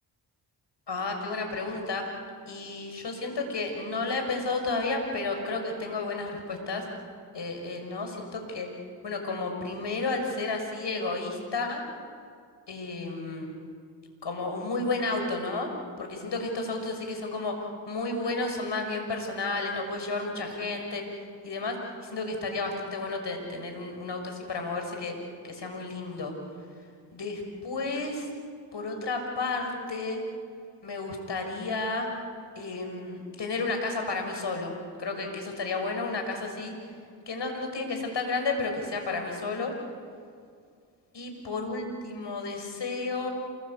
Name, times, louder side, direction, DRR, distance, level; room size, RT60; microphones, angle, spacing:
voice 1, 0.9-2.1 2.5-6.8 7.3-8.7 9.0-11.8 12.7-13.5 14.2-15.7 16.0-21.0 21.4-21.8 22.0-25.2 25.4-26.3 27.1-28.3 28.7-30.2 30.8-32.1 32.6-36.7 37.3-39.7 41.1-43.3, left 3 dB, 55° left, 4 dB, 6.1 m, -32 dB
28.0 x 21.0 x 8.5 m, 2.2 s
supercardioid pair, 40°, 50 cm